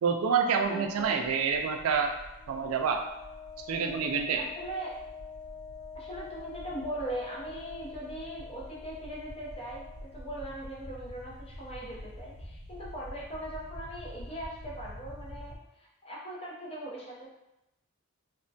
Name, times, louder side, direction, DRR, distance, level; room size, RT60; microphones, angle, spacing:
voice 1, 0.0-2.1 2.5-3.0 3.7-4.4, right 6 dB, 80° right, 4 dB, 0.4 m, -27 dB
sound 1, 0.6-15.6, equal, 35° right, 0.6 m, -47 dB
voice 2, 0.7-1.2 4.3-4.9 5.9-17.3, right 1 dB, 30° left, -4 dB, 0.6 m, -40 dB
Wind instrument woodwind instrument, 2.3-10.2, left 6 dB, 85° left, 0.5 m, -46 dB
3.2 x 2.1 x 2.6 m, 0.89 s
head